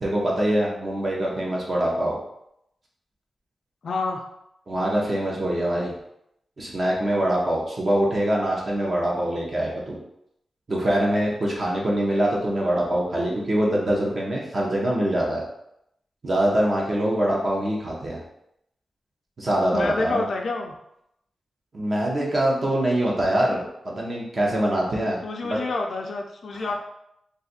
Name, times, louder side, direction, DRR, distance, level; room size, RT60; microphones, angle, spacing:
voice 1, 0.0-2.2 4.7-5.9 6.6-10.0 10.7-15.4 16.2-18.2 19.4-20.2 21.7-25.6 26.6-26.7, right 1 dB, 40° right, -3 dB, 0.7 m, -24 dB
voice 2, 3.8-4.2 19.7-20.7 25.2-26.7, left 3 dB, 60° left, 1 dB, 0.3 m, -28 dB
2.5 x 2.4 x 4.0 m, 0.79 s
wide cardioid pair, 135°, 0 cm